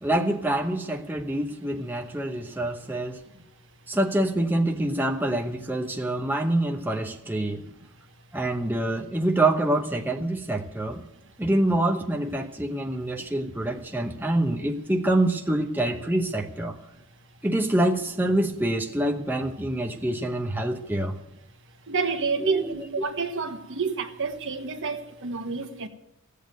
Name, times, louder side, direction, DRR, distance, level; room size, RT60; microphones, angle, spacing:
voice 1, 0.0-3.2 3.9-7.7 8.3-11.0 11.4-16.8 17.4-21.2 22.4-22.8, right 1 dB, 10° right, 0.8 m, -26 dB
voice 2, 21.9-25.9, right 4 dB, 60° right, 1.3 m, -29 dB
16.0 x 8.5 x 9.1 m
head